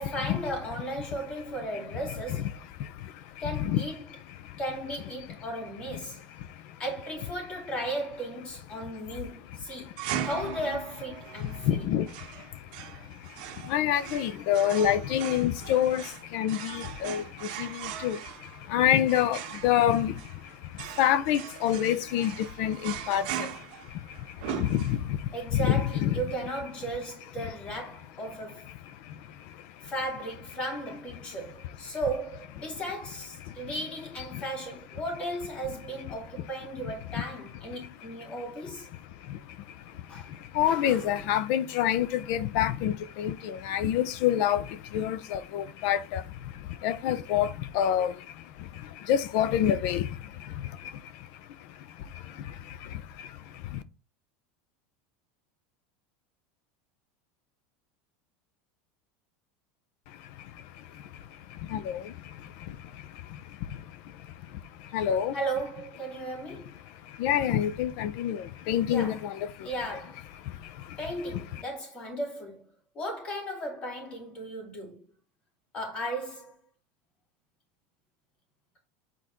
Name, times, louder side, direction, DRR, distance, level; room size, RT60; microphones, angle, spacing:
voice 1, 0.0-2.5 3.4-4.0 4.6-6.2 6.8-9.9 10.2-11.9 25.3-28.7 29.8-38.9 40.1-40.3 40.6-41.3 65.3-66.7 68.9-69.2 69.6-70.3 71.0-72.6 72.9-75.0 75.7-76.5, right 1 dB, 20° left, 2.6 m, -35 dB
voice 2, 1.7-4.6 5.3-5.4 5.9-6.8 9.1-9.2 9.7-10.3 11.3-26.3 27.4-27.5 28.7-29.9 31.2-31.4 31.6-32.0 32.7-32.8 33.4-33.7 34.3-34.4 36.8-37.2 38.0-38.3 38.9-53.8 60.1-65.4 66.5-70.0 70.4-71.0 71.3-71.6, left 10 dB, 45° left, 0.6 m, -30 dB
sound 1, 10.0-25.3, right 10 dB, 60° right, 1.6 m, -40 dB
8.5 x 4.0 x 4.5 m
supercardioid pair, 180°, 5 cm